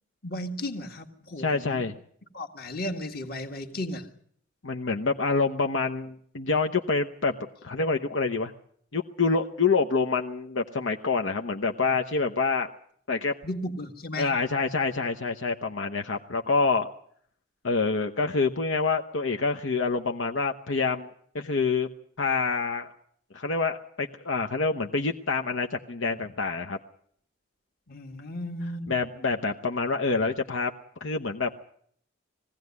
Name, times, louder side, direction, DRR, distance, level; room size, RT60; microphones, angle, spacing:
voice 1, 0.2-1.9 2.3-4.1 13.4-14.3 27.9-29.0, left 1 dB, 45° left, 1.8 m, -35 dB
voice 2, 1.4-1.9 4.6-7.4 7.6-8.5 8.9-12.7 13.1-13.3 14.2-16.9 17.6-21.1 21.3-21.9 22.2-22.9 23.3-26.8 28.9-30.7 31.0-31.6, left 4 dB, 70° left, 0.9 m, -27 dB
21.0 x 16.0 x 9.5 m
head